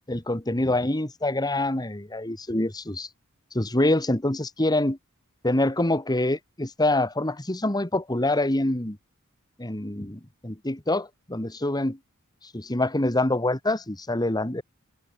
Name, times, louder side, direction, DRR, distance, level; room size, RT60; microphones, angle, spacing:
voice 1, 0.1-3.1 3.5-5.0 5.4-9.0 9.6-12.0 12.5-14.6, left 1 dB, 20° left, 1.8 m, -25 dB
open air
head